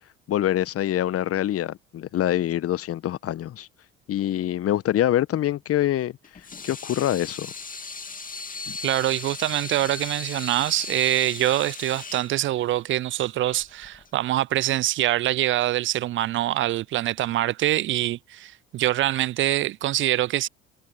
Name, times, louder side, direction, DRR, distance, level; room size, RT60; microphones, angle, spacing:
voice 1, 0.3-3.7 4.1-6.1 6.6-7.5 8.7-8.8, left 12 dB, 45° left, 1.2 m, -25 dB
Water tap faucet / Sink (filling or washing), 6.2-14.3, left 4 dB, 25° left, 2.6 m, -38 dB
voice 2, 8.8-20.5, right 14 dB, 40° right, 0.4 m, -24 dB
hypercardioid pair, 60°, 31 cm